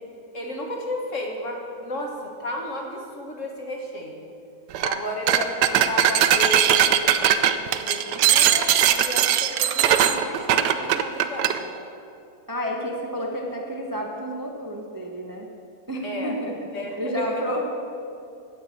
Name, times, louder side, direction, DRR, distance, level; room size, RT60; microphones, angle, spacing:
voice 1, 0.3-4.2 4.8-11.7 16.0-16.3 16.7-17.5, left 1 dB, 45° left, 1 dB, 1.8 m, -33 dB
sound 1, 4.7-5.0 5.3-11.6, right 10 dB, 75° right, 1.2 m, -20 dB
voice 2, 12.5-15.5 15.9-16.5 17.0-17.6, equal, 20° right, 0 dB, 0.6 m, -30 dB
9.5 x 7.6 x 8.4 m, 2.5 s
omnidirectional pair, 1.8 m